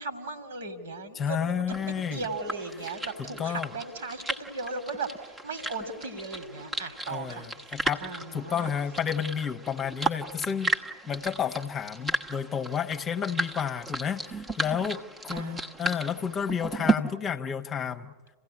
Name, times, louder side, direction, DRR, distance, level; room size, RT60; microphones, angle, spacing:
voice 1, 0.0-8.8 15.2-15.7, right 3 dB, 65° right, 9 dB, 2.4 m, -37 dB
voice 2, 1.2-2.2 3.4-3.7 7.1-8.0 8.3-10.7 11.1-18.1, left 7 dB, 25° left, 9 dB, 1.0 m, -31 dB
sound 1, 1.7-16.9, right 3 dB, 10° right, 1.1 m, -34 dB
28.0 x 16.5 x 9.8 m, 1.4 s
figure-of-eight pair, 90°, 0 cm